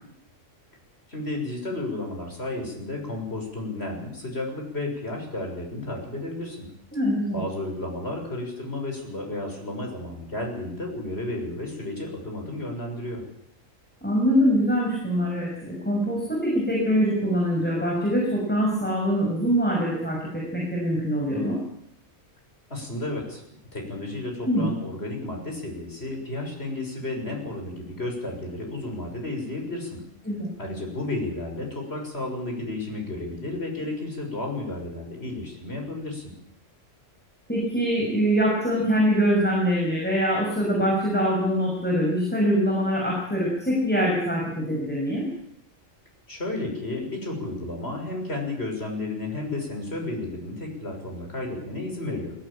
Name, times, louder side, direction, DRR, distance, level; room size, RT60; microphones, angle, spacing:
voice 1, 1.1-6.6 7.3-13.2 22.7-23.4 23.7-30.0 30.6-36.3 46.3-52.3, left 2 dB, 50° left, 1 dB, 6.8 m, -32 dB
voice 2, 6.9-7.4 14.0-21.6 24.4-24.7 30.3-30.5 37.5-45.3, equal, 5° left, -3 dB, 6.3 m, -24 dB
22.0 x 17.0 x 8.8 m, 0.73 s
omnidirectional pair, 1.3 m